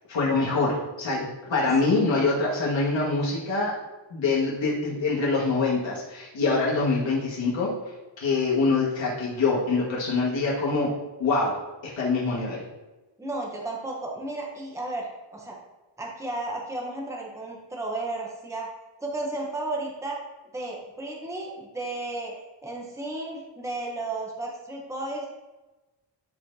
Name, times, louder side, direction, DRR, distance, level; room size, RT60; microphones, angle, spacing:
voice 1, 0.1-3.7 4.1-7.7 8.2-10.9 11.2-11.6 12.0-12.6, left 3 dB, 90° left, -6 dB, 2.1 m, -24 dB
voice 2, 13.2-15.6 16.0-18.7 19.0-20.2 20.5-22.3 22.6-25.3, right 2 dB, 5° right, -2 dB, 1.0 m, -33 dB
12.5 x 4.3 x 2.8 m, 1.1 s
wide cardioid pair, 155°, 44 cm